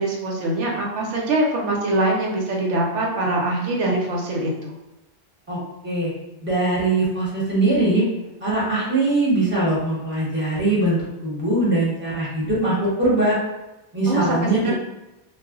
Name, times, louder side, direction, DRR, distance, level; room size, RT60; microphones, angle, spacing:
voice 1, 0.0-4.8 14.1-14.7, right 1 dB, 85° right, -1 dB, 1.0 m, -23 dB
voice 2, 6.4-8.0 8.4-13.4 13.9-14.7, right 2 dB, 10° right, -7 dB, 0.8 m, -21 dB
2.3 x 2.0 x 3.6 m, 0.96 s
omnidirectional pair, 1.2 m